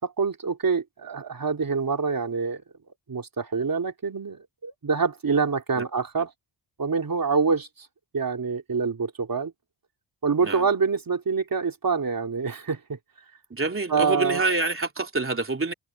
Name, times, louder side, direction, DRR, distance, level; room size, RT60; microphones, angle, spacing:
voice 1, 0.0-2.6 3.1-6.3 6.8-7.9 8.1-9.5 10.2-13.0 13.9-14.4, right 5 dB, 40° right, 3.4 m, -26 dB
voice 2, 13.5-15.7, right 3 dB, 25° right, 3.1 m, -26 dB
cardioid pair, 90°, 50 cm